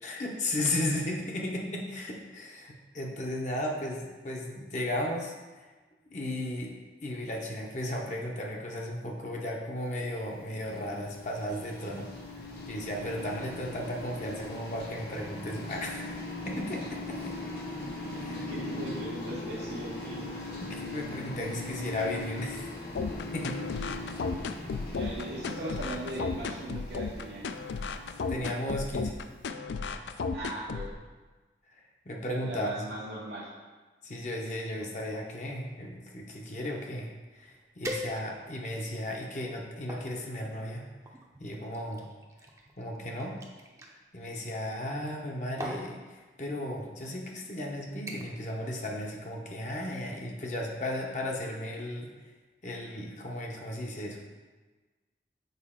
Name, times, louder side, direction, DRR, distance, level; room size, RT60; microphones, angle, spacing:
voice 1, 0.0-5.3 6.1-6.7 7.0-12.1 12.7-16.1 16.5-17.4 18.2-18.5 20.6-22.6 23.3-23.6 28.3-29.1 32.1-33.0 34.0-40.9 41.4-42.0 42.8-43.4 44.1-52.1 52.6-54.3, left 1 dB, 40° left, 0 dB, 0.7 m, -35 dB
sound 1, 10.1-29.1, left 2 dB, 65° left, 1.0 m, -40 dB
voice 2, 18.2-20.2 24.9-27.5 30.3-31.0 32.4-33.5, right 1 dB, 90° right, -6 dB, 1.0 m, -39 dB
sound 2, 22.9-30.9, left 4 dB, 90° left, 0.4 m, -34 dB
sound 3, 37.8-38.6 39.2-40.1 41.0-43.9 45.0-45.3 45.6-45.9 46.8-46.9 47.4-47.6 48.1-48.5 48.8-49.1 49.5-49.6, equal, 15° right, 0.5 m, -41 dB
6.6 x 4.6 x 3.6 m, 1.3 s
head